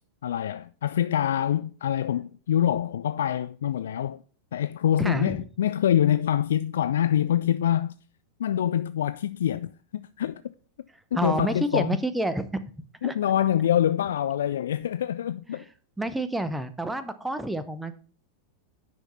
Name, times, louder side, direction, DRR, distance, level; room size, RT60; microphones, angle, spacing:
voice 1, 0.2-4.2 4.5-8.0 8.4-10.4 11.1-12.0 13.0-15.7, left 10 dB, 60° left, 0.3 m, -25 dB
voice 2, 5.0-5.4 11.2-12.6 13.0-13.1 15.5-15.6 16.0-17.9, right 1 dB, 5° right, 0.8 m, -29 dB
10.0 x 5.8 x 4.2 m
figure-of-eight pair, 90°, 0 cm